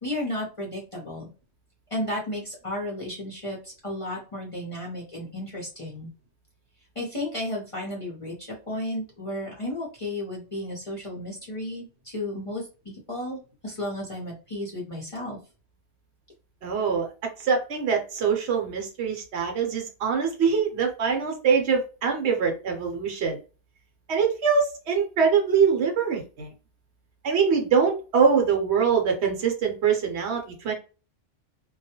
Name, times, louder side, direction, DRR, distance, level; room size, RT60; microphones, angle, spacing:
voice 1, 0.0-1.3 1.9-6.1 7.0-15.4, left 1 dB, 35° left, -3 dB, 0.6 m, -33 dB
voice 2, 16.6-23.4 24.1-26.5 27.2-30.7, right 6 dB, 70° right, 3 dB, 0.9 m, -23 dB
2.3 x 2.1 x 2.8 m, 0.34 s
omnidirectional pair, 1.2 m